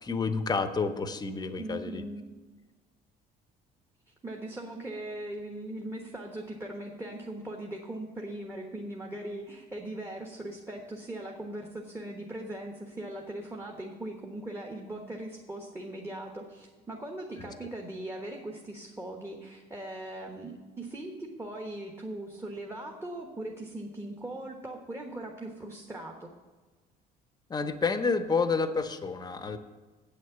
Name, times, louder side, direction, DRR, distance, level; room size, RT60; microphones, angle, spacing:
voice 1, 0.0-2.0 17.4-17.5 27.5-29.6, left 4 dB, 25° left, 10 dB, 0.8 m, -29 dB
voice 2, 1.6-2.2 4.2-26.3, right 1 dB, 15° right, 1 dB, 1.2 m, -40 dB
8.1 x 6.5 x 8.0 m, 1.3 s
cardioid pair, 110°, 17 cm